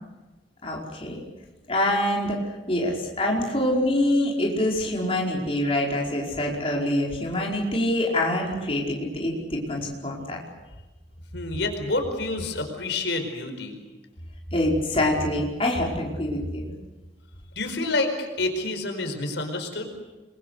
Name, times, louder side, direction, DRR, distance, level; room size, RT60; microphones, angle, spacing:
voice 1, 0.6-1.2 1.7-2.4 2.7-10.4 14.5-16.7, left 1 dB, 30° left, -2 dB, 5.0 m, -25 dB
voice 2, 11.3-13.8 17.5-19.9, left 2 dB, 85° left, 5 dB, 4.8 m, -28 dB
28.5 x 22.5 x 6.7 m, 1.2 s
head